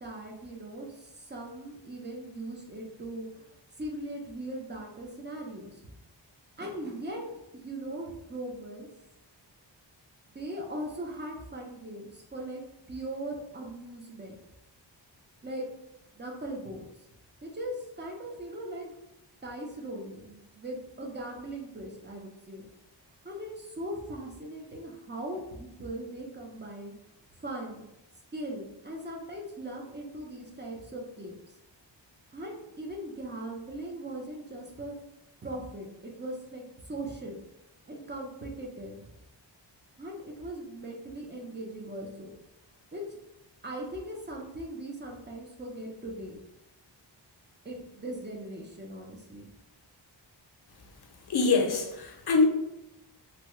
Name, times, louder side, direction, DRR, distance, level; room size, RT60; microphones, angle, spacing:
voice 1, 0.0-3.3 3.8-5.9 6.6-8.9 10.3-14.4 15.4-15.7 16.1-16.9 17.4-18.9 19.4-22.6 23.2-26.9 27.4-27.8 28.3-31.3 32.3-35.0 35.4-37.4 37.9-39.1 40.0-42.3 42.9-43.0 43.6-46.4 47.6-49.5, right 1 dB, 25° right, 0 dB, 0.6 m, -39 dB
voice 2, 51.3-52.5, left 4 dB, 60° left, 2 dB, 0.6 m, -24 dB
2.9 x 2.2 x 3.1 m, 0.90 s
wide cardioid pair, 105°, 45 cm